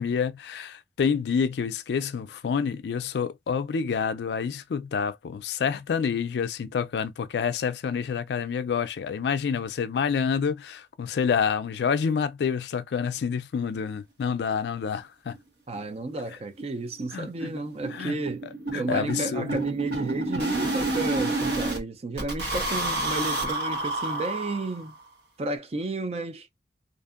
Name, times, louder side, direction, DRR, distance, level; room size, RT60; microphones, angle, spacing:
voice 1, 0.0-15.3 17.1-17.5 17.9-18.2 18.7-19.6, left 6 dB, 70° left, 0.3 m, -28 dB
sound 1, 14.9-15.0 15.3-15.4 15.8-15.9 16.2-16.3 16.6-21.8 22.2-25.0, right 2 dB, 75° right, 1.0 m, -29 dB
voice 2, 15.7-18.4 18.7-25.0 25.4-26.5, right 2 dB, 35° right, 0.4 m, -32 dB
2.6 x 2.5 x 2.4 m
head